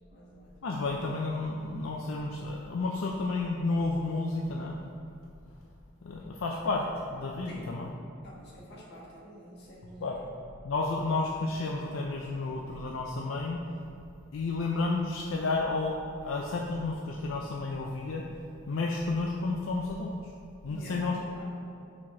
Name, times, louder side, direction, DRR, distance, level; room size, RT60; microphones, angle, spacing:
voice 1, 0.1-0.6 7.5-7.7 8.2-10.3 20.7-21.4, equal, 60° left, -4 dB, 1.5 m, -48 dB
voice 2, 0.6-4.8 6.0-6.9 7.1-7.9 10.0-10.2 10.6-13.6 14.3-16.0 16.2-18.2 18.7-20.3 20.6-21.4, left 3 dB, 85° left, -1 dB, 0.5 m, -31 dB
6.1 x 4.4 x 4.4 m, 2.5 s
head